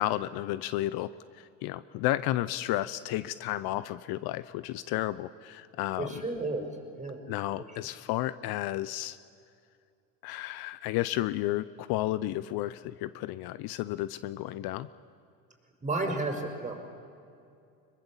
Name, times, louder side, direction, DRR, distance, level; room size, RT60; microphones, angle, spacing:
voice 1, 0.0-6.2 7.3-9.2 10.2-14.9, left 15 dB, 60° left, 16 dB, 0.7 m, -32 dB
voice 2, 6.0-6.6 7.0-7.2 15.8-16.8, right 2 dB, 20° right, 3 dB, 5.1 m, -32 dB
22.5 x 20.5 x 7.3 m, 2.4 s
hypercardioid pair, 70°, 41 cm